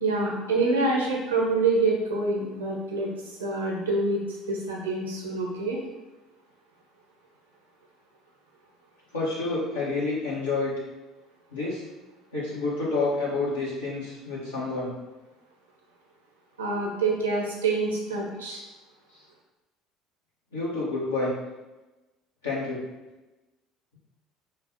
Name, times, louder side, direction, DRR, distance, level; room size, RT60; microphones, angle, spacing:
voice 1, 0.0-3.1 3.4-5.8 16.6-18.6, right 3 dB, 90° right, -2 dB, 0.7 m, -26 dB
voice 2, 9.1-10.8 11.5-11.8 12.3-14.9 20.5-21.3 22.4-22.8, left 3 dB, 90° left, -8 dB, 1.2 m, -28 dB
5.1 x 2.1 x 2.8 m, 1.1 s
hypercardioid pair, 65°, 0 cm